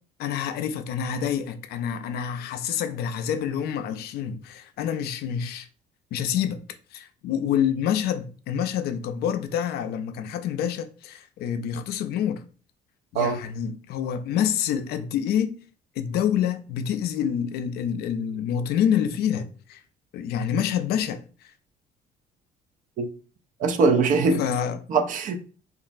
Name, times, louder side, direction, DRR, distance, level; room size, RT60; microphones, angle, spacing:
voice 1, 0.2-5.7 6.1-6.6 6.9-12.4 13.1-15.6 16.0-19.8 20.1-21.2 24.4-24.8, left 9 dB, 70° left, 0.4 m, -27 dB
voice 2, 23.6-24.4 24.9-25.4, right 4 dB, 50° right, 0.4 m, -21 dB
3.0 x 2.4 x 2.4 m
cardioid pair, 110°, 17 cm